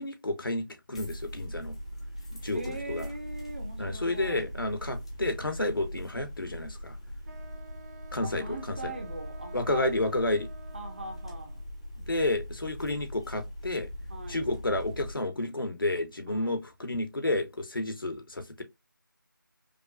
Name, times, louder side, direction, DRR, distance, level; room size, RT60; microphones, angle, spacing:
voice 1, 0.0-1.8 2.3-3.1 3.8-7.0 8.1-8.9 9.5-10.5 12.1-13.9 14.3-18.6, left 2 dB, 80° left, 1.2 m, -31 dB
sound 1, 0.9-15.1, equal, 15° left, 0.5 m, -41 dB
voice 2, 2.4-4.5 8.2-9.9 10.7-11.6 14.1-14.5 16.3-16.6, right 2 dB, 30° right, 0.9 m, -41 dB
Wind instrument woodwind instrument, 7.2-11.7, right 4 dB, 50° right, 1.2 m, -51 dB
5.2 x 2.3 x 2.3 m
figure-of-eight pair, 165°, 11 cm